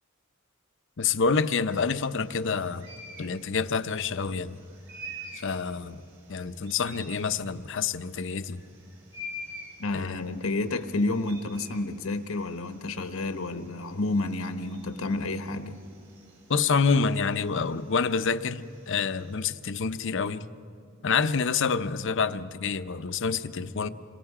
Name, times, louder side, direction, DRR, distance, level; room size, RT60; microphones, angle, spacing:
voice 1, 1.0-2.9 3.2-4.6 5.4-6.0 6.3-8.6 9.9-10.2 16.5-20.5 21.0-23.9, left 5 dB, 60° left, 12 dB, 0.7 m, -27 dB
sound 1, 1.7-19.3, equal, 60° right, 4.4 m, -48 dB
voice 2, 9.8-15.8, left 2 dB, 80° left, 8 dB, 1.1 m, -30 dB
27.5 x 23.5 x 4.9 m, 2.5 s
head